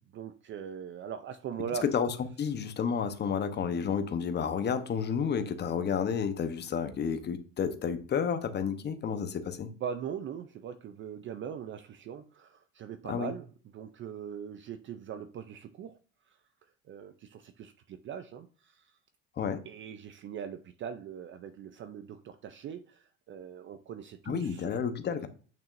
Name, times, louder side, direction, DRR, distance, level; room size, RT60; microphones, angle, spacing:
voice 1, 0.1-1.9 9.7-13.5 13.7-16.0 16.3-16.4 16.9-18.9 19.7-24.8, right 8 dB, 35° right, 0.4 m, -41 dB
voice 2, 1.8-9.7 13.1-13.3 19.4-19.6 24.3-25.3, left 7 dB, 30° left, 0.9 m, -31 dB
8.9 x 6.0 x 2.6 m
cardioid pair, 125°, 34 cm